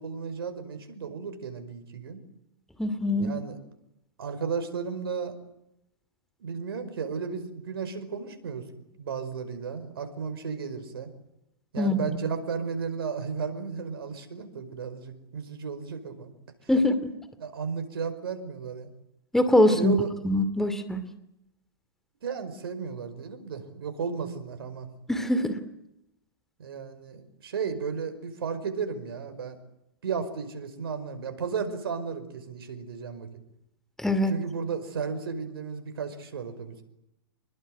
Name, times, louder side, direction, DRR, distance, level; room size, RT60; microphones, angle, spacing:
voice 1, 0.0-2.2 3.2-3.6 4.2-5.3 6.4-8.7 9.0-11.1 11.7-16.3 17.4-18.9 19.8-20.1 22.2-24.9 26.6-29.6 30.0-33.3 34.3-36.8, right 6 dB, 75° right, 9 dB, 5.2 m, -34 dB
voice 2, 2.8-3.3 11.8-12.2 16.7-17.0 19.3-20.0 20.2-21.0 25.1-25.6 34.0-34.3, left 1 dB, 5° left, 10 dB, 2.6 m, -23 dB
26.5 x 21.0 x 9.3 m, 0.83 s
hypercardioid pair, 125°, 13 cm